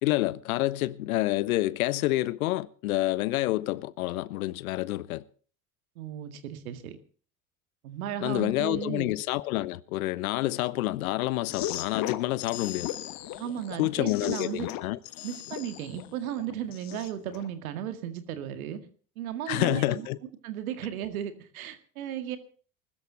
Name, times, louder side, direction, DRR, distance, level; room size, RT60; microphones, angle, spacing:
voice 1, 0.0-5.2 8.2-12.9 13.8-15.0 19.5-20.2, left 17 dB, 80° left, 0.8 m, -28 dB
voice 2, 6.0-7.0 7.8-9.1 13.4-14.7 15.2-18.8 19.2-20.0 20.4-22.4, right 10 dB, 80° right, 2.1 m, -35 dB
sound 1, 11.4-17.5, left 13 dB, 55° left, 1.3 m, -37 dB
20.5 x 13.5 x 3.9 m
hypercardioid pair, 75°, 42 cm